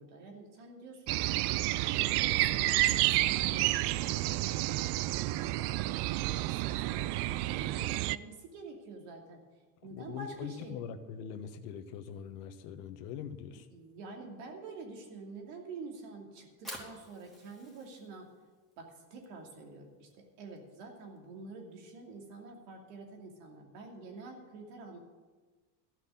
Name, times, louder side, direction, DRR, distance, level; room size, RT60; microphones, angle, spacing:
voice 1, 0.0-1.5 1.9-9.4 9.8-10.8 13.7-18.3 18.8-25.0, right 3 dB, 75° right, 1 dB, 2.8 m, -48 dB
sound 1, 1.1-8.2, right 17 dB, 55° right, 0.5 m, -30 dB
voice 2, 9.9-13.7, left 8 dB, 75° left, 8 dB, 1.3 m, -42 dB
Fire, 16.6-22.6, equal, ahead, 2.8 m, -52 dB
13.5 x 6.0 x 8.8 m, 1.3 s
supercardioid pair, 100°, 50 cm